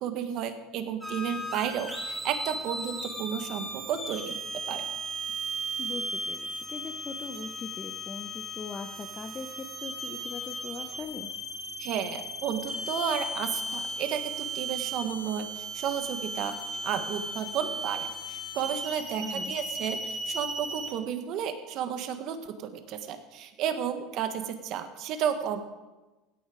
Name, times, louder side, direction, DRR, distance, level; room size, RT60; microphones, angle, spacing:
voice 1, 0.0-4.8 11.8-16.6 16.8-25.6, right 8 dB, 55° right, 8 dB, 1.5 m, -32 dB
sound 1, 1.0-20.9, right 1 dB, 10° right, 3.7 m, -36 dB
voice 2, 5.8-11.3 19.2-19.6, left 4 dB, 25° left, 5 dB, 0.8 m, -40 dB
16.5 x 9.9 x 5.0 m, 1.1 s
supercardioid pair, 130°, 0 cm